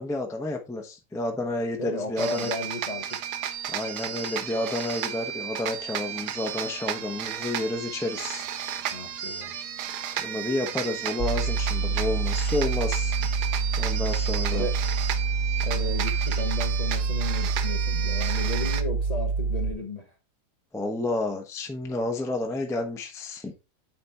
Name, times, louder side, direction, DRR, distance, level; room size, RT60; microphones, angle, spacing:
voice 1, 0.0-2.5 3.7-8.5 10.2-13.2 13.8-14.7 20.7-23.5, left 2 dB, 5° left, 0.7 m, -30 dB
voice 2, 1.8-3.1 8.9-9.5 14.5-14.7 15.6-20.1, left 2 dB, 30° left, 0.9 m, -34 dB
sound 1, 2.2-18.8, right 9 dB, 80° right, 1.3 m, -33 dB
sound 2, 11.2-19.7, right 4 dB, 60° right, 0.6 m, -27 dB
8.6 x 4.3 x 3.5 m
omnidirectional pair, 1.8 m